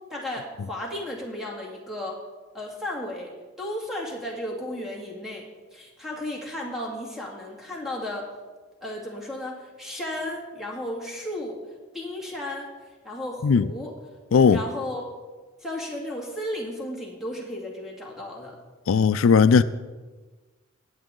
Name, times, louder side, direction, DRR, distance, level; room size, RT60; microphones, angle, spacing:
voice 1, 0.1-2.2 2.5-8.3 8.8-11.6 11.9-12.7 13.0-14.0 14.5-15.1 15.6-18.6, left 1 dB, ahead, 2.2 m, -34 dB
voice 2, 14.3-14.6 18.9-19.6, left 5 dB, 85° left, 0.4 m, -17 dB
20.0 x 8.0 x 3.8 m
head